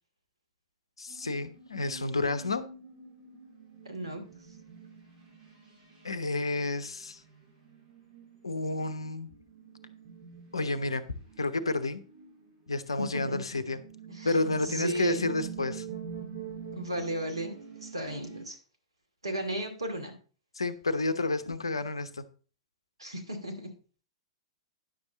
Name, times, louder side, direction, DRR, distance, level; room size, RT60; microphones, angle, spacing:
voice 1, 1.0-2.6 6.0-7.2 8.4-9.3 10.5-11.1 11.4-12.0 12.7-13.8 14.2-15.9 20.6-22.2, left 2 dB, 75° left, 12 dB, 0.9 m, -30 dB
sound 1, 1.1-5.4 6.6-6.8 7.7-8.3 8.7-9.1 9.6-11.1 11.4-12.3 13.1-13.2 13.5-18.4, right 6 dB, 40° right, 3.7 m, -44 dB
voice 2, 3.8-4.2 13.0-13.4 14.1-14.4 14.6-15.3 16.7-18.6 19.2-20.1 23.0-23.7, right 1 dB, 75° right, 3 dB, 2.4 m, -35 dB
10.0 x 7.1 x 4.0 m, 0.37 s
figure-of-eight pair, 105°, 3 cm